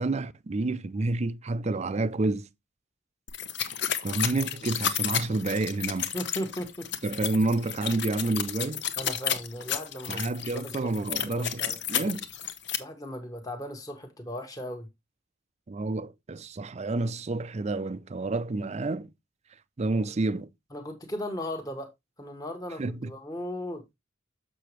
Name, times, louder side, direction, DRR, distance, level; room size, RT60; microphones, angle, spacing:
voice 1, 0.0-2.5 4.0-6.1 7.0-8.8 10.1-11.6 11.9-12.3 15.7-19.1 19.8-20.5 22.8-23.1, right 2 dB, 35° right, 0.4 m, -29 dB
sound 1, 3.3-12.8, left 9 dB, 55° left, 0.9 m, -32 dB
voice 2, 6.1-6.9 9.0-10.3 10.5-10.9 11.2-11.8 12.8-14.9 20.7-21.9 22.2-23.8, equal, 20° left, 1.2 m, -37 dB
6.9 x 6.6 x 3.1 m
head